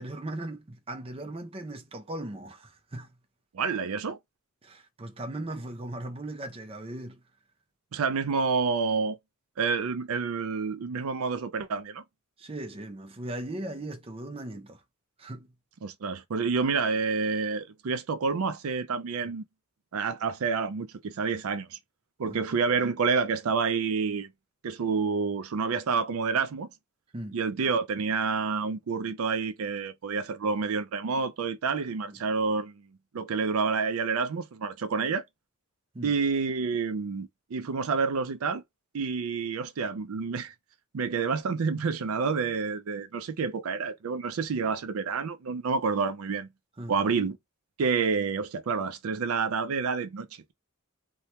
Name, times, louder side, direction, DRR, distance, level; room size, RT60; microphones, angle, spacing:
voice 1, 0.0-3.1 4.6-7.2 12.4-14.8 15.2-15.5 19.2-19.3 22.3-22.4 27.1-27.4 32.1-32.2 35.9-36.1 46.8-47.0, right 1 dB, 25° right, 0.5 m, -38 dB
voice 2, 3.5-4.2 7.9-9.2 9.6-12.0 15.8-19.4 19.9-21.8 22.2-24.3 24.6-26.7 27.3-32.7 33.1-35.2 36.0-38.6 38.9-40.5 40.9-46.5 46.9-47.4 47.8-50.5, right 5 dB, 80° right, 0.5 m, -28 dB
2.8 x 2.2 x 3.0 m
head